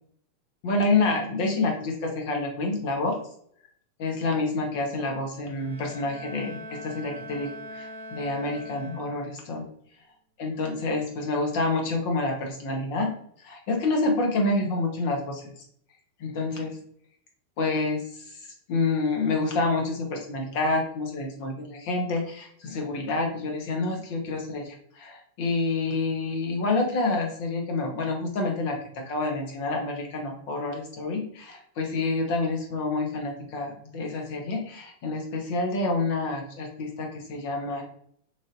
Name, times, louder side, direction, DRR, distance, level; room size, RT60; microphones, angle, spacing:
voice 1, 0.6-3.2 4.0-9.6 10.4-13.1 13.4-15.5 16.2-16.8 17.6-37.8, left 3 dB, 45° left, 2 dB, 0.8 m, -28 dB
Bowed string instrument, 5.4-9.5, equal, 80° right, 0.5 m, -42 dB
3.3 x 2.6 x 2.5 m, 0.65 s
figure-of-eight pair, 90°, 0 cm